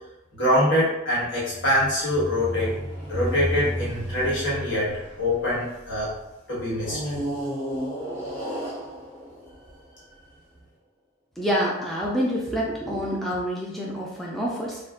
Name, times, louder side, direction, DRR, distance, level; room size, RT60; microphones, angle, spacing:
voice 1, 0.3-2.7 3.1-6.1 6.5-7.2, left 1 dB, 80° left, -8 dB, 1.4 m, -24 dB
sound 1, 1.3-6.0 6.8-10.2, equal, 30° left, 1.0 m, -33 dB
voice 2, 11.4-14.8, equal, ahead, -5 dB, 0.3 m, -27 dB
2.4 x 2.1 x 3.6 m, 0.94 s
head